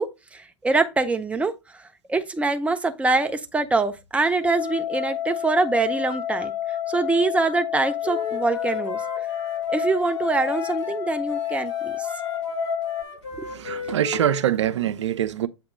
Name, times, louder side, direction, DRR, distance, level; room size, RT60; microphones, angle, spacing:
voice 1, 0.0-1.8 2.1-6.5 6.9-9.0 9.7-12.1 13.4-13.5, right 3 dB, 10° right, 0.7 m, -24 dB
sound 1, 4.4-13.0, left 11 dB, 25° left, 0.6 m, -29 dB
Wind instrument woodwind instrument, 8.0-11.0 11.3-14.5, left 3 dB, 70° left, 3.8 m, -35 dB
voice 2, 13.4-15.5, right 11 dB, 70° right, 0.6 m, -24 dB
7.4 x 2.9 x 5.0 m
figure-of-eight pair, 100°, 16 cm